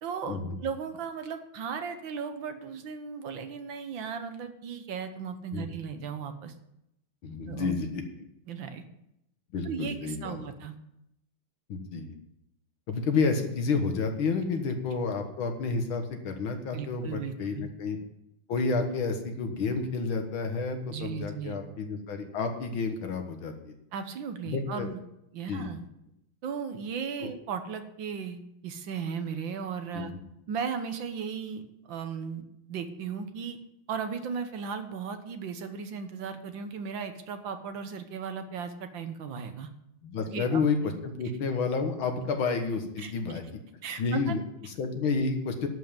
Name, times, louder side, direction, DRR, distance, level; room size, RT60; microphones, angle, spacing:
voice 1, 0.0-6.5 7.5-7.7 8.5-8.8 9.6-10.8 16.7-17.7 20.9-21.6 23.9-25.0 25.3-25.9 26.4-30.1 30.5-33.6 33.9-39.7 40.3-41.0 43.0-43.1 43.8-44.4, right 6 dB, 70° right, 8 dB, 1.7 m, -36 dB
voice 2, 7.2-8.3 9.5-10.4 11.7-12.2 12.9-18.0 18.5-23.7 24.5-24.9 25.5-25.6 27.2-27.3 29.9-30.1 40.0-43.4 44.0-45.7, left 4 dB, 70° left, 5 dB, 2.2 m, -30 dB
12.0 x 5.6 x 9.1 m, 0.81 s
omnidirectional pair, 2.3 m